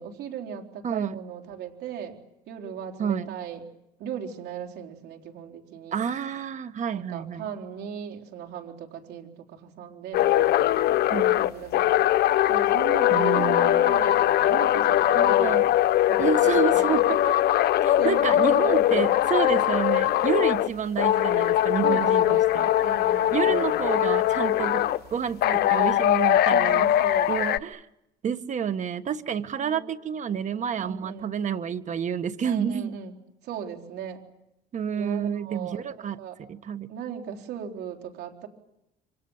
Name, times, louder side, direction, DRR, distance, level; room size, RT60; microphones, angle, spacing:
voice 1, 0.0-2.2 2.5-3.6 4.0-6.0 6.9-12.0 12.5-15.7 16.1-17.3 18.0-19.2 21.8-22.5 22.8-23.9 25.4-26.0 26.5-27.3 29.6-30.0 30.8-31.3 32.4-33.2 33.4-34.2 34.9-36.4 36.9-38.5, right 8 dB, 75° right, 4 dB, 4.1 m, -37 dB
voice 2, 0.8-1.2 3.0-3.3 5.9-7.5 11.1-11.4 13.1-13.8 15.1-15.7 16.2-17.0 17.8-22.2 22.5-22.7 23.3-26.9 27.3-27.8 28.2-32.9 34.7-36.2 36.5-36.9, right 8 dB, 45° right, 12 dB, 1.5 m, -29 dB
sound 1, 10.1-20.7 21.0-25.0 25.4-27.6, left 13 dB, 70° left, 0.9 m, -21 dB
28.0 x 26.0 x 7.4 m, 0.85 s
cardioid pair, 110°, 17 cm